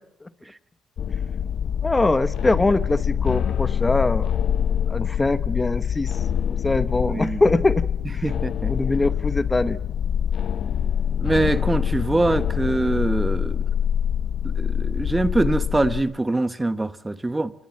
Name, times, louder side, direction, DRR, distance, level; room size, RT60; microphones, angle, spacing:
sound 1, 1.0-16.0, left 8 dB, 65° left, 0.9 m, -25 dB
voice 1, 1.8-4.3 4.9-6.1 6.5-7.9 8.1-8.2 8.7-9.8, left 2 dB, 20° left, 1.0 m, -22 dB
voice 2, 7.0-7.4 8.2-8.7 11.2-13.6 14.4-17.5, right 2 dB, 15° right, 1.2 m, -23 dB
28.0 x 20.5 x 7.3 m
cardioid pair, 90°, 0 cm